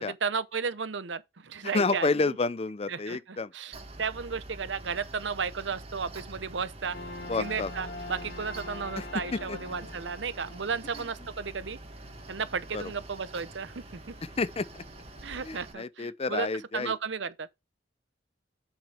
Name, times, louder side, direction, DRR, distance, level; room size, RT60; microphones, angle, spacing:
voice 1, 0.1-2.4 2.9-7.0 7.4-11.8 12.3-14.1 15.2-16.5 16.7-17.5, right 5 dB, 75° right, 0.8 m, -34 dB
voice 2, 1.7-3.5 7.3-7.7 9.0-9.1 9.5-9.6 12.7-12.8 14.4-14.8 15.4-16.9, left 3 dB, 30° left, 0.5 m, -29 dB
Mechanical fan, 3.7-15.7, right 2 dB, 35° right, 1.8 m, -46 dB
sound 1, 6.9-15.4, left 2 dB, 80° left, 2.8 m, -46 dB
8.1 x 7.2 x 3.5 m
head